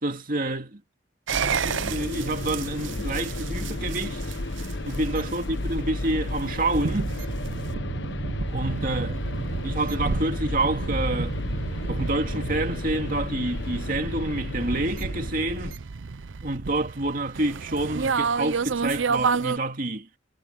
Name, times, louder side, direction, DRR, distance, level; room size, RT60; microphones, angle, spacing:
voice 1, 0.0-0.8 1.6-4.2 4.8-7.1 8.5-9.2 9.6-11.4 11.9-15.8 16.4-20.1, right 2 dB, 45° right, 2.4 m, -28 dB
sound 1, 1.3-15.8, left 2 dB, 65° left, 1.2 m, -33 dB
sound 2, 1.3-19.6, right 5 dB, 80° right, 0.7 m, -31 dB
head